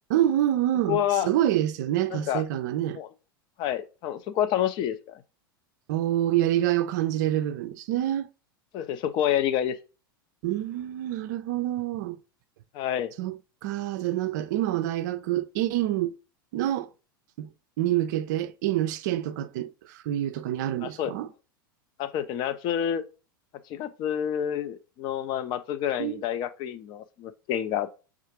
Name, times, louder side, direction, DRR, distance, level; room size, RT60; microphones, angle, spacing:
voice 1, 0.1-3.0 5.9-8.3 10.4-12.2 13.2-13.4 13.6-16.1 16.5-16.9 17.4-17.5 17.8-21.3 26.0-26.2, right 13 dB, 55° right, 0.4 m, -27 dB
voice 2, 0.9-1.3 2.1-2.4 2.9-3.1 3.6-5.2 8.7-9.8 12.7-13.1 20.8-21.1 22.0-23.0 23.7-27.9, left 10 dB, 40° left, 0.5 m, -28 dB
6.4 x 2.4 x 2.8 m
figure-of-eight pair, 85°, 12 cm